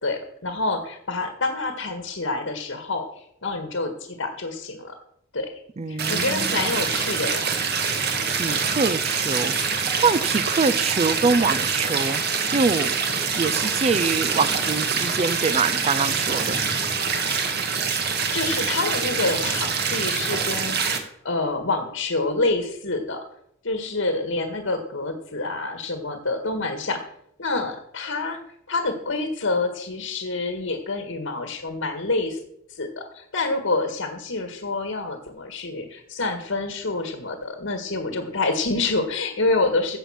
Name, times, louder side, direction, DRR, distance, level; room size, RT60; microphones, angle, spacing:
voice 1, 0.0-5.0 5.3-5.6 5.9-7.4 18.3-23.2 23.6-27.0 27.4-28.4 28.7-32.4 32.7-40.0, left 3 dB, 80° left, 1.8 m, -27 dB
voice 2, 5.8-6.5 8.3-12.2 12.5-12.9 13.4-16.6, right 4 dB, 35° right, 0.5 m, -24 dB
sound 1, 6.0-21.0, right 5 dB, 55° right, 1.7 m, -25 dB
15.5 x 5.4 x 7.4 m
head